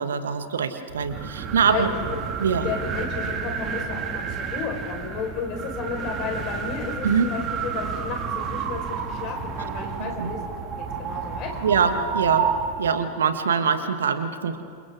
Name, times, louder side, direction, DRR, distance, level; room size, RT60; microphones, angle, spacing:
voice 1, 0.0-1.9 2.4-2.7 7.0-7.3 10.0-10.3 11.6-12.5 12.8-14.6, right 6 dB, 65° right, 8 dB, 1.6 m, -23 dB
sound 1, 0.9-13.0, right 6 dB, 30° right, 2.1 m, -30 dB
voice 2, 1.7-2.0 2.5-10.4 10.8-11.6, left 5 dB, 40° left, 2 dB, 4.7 m, -33 dB
29.0 x 27.0 x 3.7 m, 2.4 s
figure-of-eight pair, 90°, 0 cm